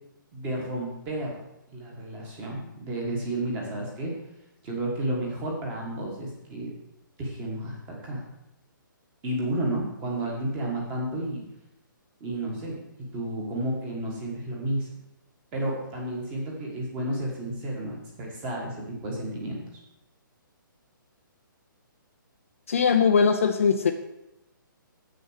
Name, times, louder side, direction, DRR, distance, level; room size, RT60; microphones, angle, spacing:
voice 1, 0.3-1.4 1.7-4.1 4.6-6.7 7.2-8.2 9.2-11.4 12.2-12.8 13.1-14.9 15.5-19.6, right 1 dB, 10° right, -2 dB, 1.4 m, -31 dB
voice 2, 22.7-23.9, left 6 dB, 40° left, 6 dB, 0.5 m, -20 dB
7.6 x 6.5 x 6.3 m, 0.90 s
hypercardioid pair, 175°, 11 cm